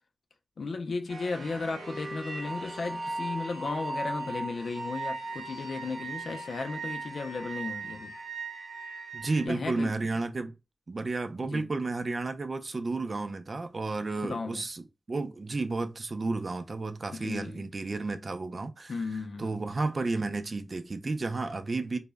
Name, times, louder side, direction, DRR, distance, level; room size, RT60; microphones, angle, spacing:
voice 1, 0.6-8.1 9.4-9.9 11.5-11.7 14.2-14.6 17.1-17.6 18.9-19.6, left 3 dB, 80° left, 0.4 m, -35 dB
sound 1, 1.1-9.5, right 2 dB, 85° right, 0.7 m, -38 dB
voice 2, 9.1-10.6 10.9-14.8 15.1-18.9 19.4-22.0, right 3 dB, 55° right, 0.4 m, -32 dB
2.1 x 2.0 x 3.3 m
cardioid pair, 60°, 0 cm